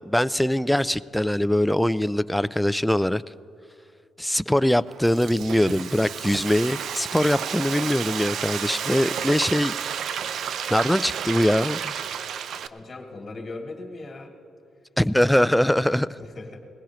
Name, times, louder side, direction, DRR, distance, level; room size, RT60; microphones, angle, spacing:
voice 1, 0.0-3.2 4.2-9.7 10.7-11.9 15.0-16.2, left 1 dB, 5° left, 0.3 m, -22 dB
Frying (food), 4.8-12.7, right 8 dB, 70° right, 0.5 m, -31 dB
voice 2, 12.7-14.3 16.2-16.6, left 2 dB, 30° left, 2.7 m, -38 dB
20.0 x 16.5 x 3.1 m
cardioid pair, 90°, 0 cm